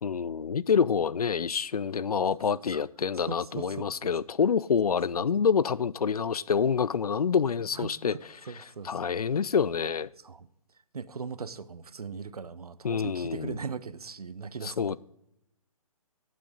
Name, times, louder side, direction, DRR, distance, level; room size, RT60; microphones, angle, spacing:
voice 1, 0.0-8.1 8.8-10.1 12.8-13.6 14.6-15.0, left 6 dB, 90° left, 0.4 m, -27 dB
voice 2, 2.3-2.8 3.1-4.1 5.1-5.2 7.7-9.2 10.2-10.5 10.9-15.0, right 5 dB, 85° right, 0.6 m, -40 dB
9.8 x 7.7 x 3.7 m
figure-of-eight pair, 135°, 19 cm